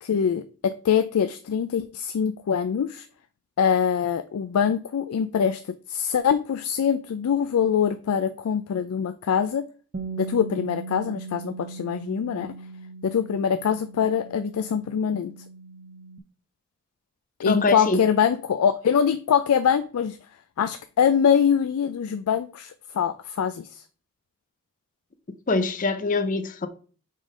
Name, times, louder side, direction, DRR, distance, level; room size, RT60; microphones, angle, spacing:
voice 1, 0.0-3.1 3.6-9.6 10.2-12.5 13.0-15.3 17.4-20.2 20.6-23.8, left 7 dB, 90° left, 0.4 m, -24 dB
Bass guitar, 9.9-16.2, right 4 dB, 45° right, 0.5 m, -39 dB
voice 2, 17.5-18.0 25.5-26.7, left 3 dB, 35° left, 0.5 m, -24 dB
5.3 x 3.7 x 4.9 m
head